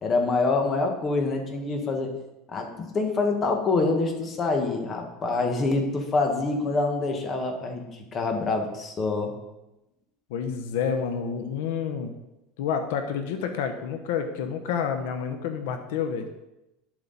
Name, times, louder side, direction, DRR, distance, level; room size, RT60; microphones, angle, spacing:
voice 1, 0.0-2.1 2.5-9.3, left 3 dB, 25° left, 3 dB, 1.4 m, -26 dB
voice 2, 10.3-12.1 12.6-16.3, left 7 dB, 80° left, 7 dB, 1.0 m, -29 dB
10.5 x 7.6 x 4.1 m, 0.94 s
supercardioid pair, 150°, 0 cm